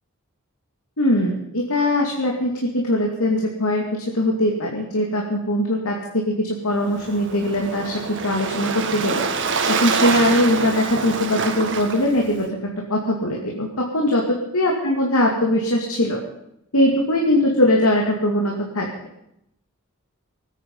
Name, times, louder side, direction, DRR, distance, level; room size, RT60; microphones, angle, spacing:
voice 1, 1.0-3.8 4.1-9.2 9.7-12.5 12.9-14.2 14.5-16.2 16.7-18.9, left 1 dB, 85° left, 0 dB, 2.5 m, -21 dB
Waves surf, 6.8-12.5, right 4 dB, 60° right, 1.7 m, -26 dB
25.0 x 9.3 x 5.4 m, 0.81 s
head